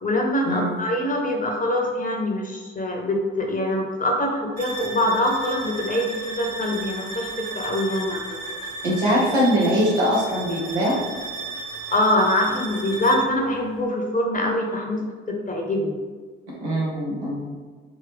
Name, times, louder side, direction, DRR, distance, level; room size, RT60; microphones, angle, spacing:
voice 1, 0.0-8.4 11.9-15.0 15.3-16.0, left 1 dB, 25° left, 0 dB, 1.0 m, -24 dB
sound 1, 4.6-13.4, right 2 dB, 30° right, 1.1 m, -34 dB
voice 2, 8.8-11.0 16.6-17.5, equal, 85° right, -5 dB, 1.0 m, -22 dB
3.7 x 3.0 x 3.4 m, 1.4 s
figure-of-eight pair, 45°, 33 cm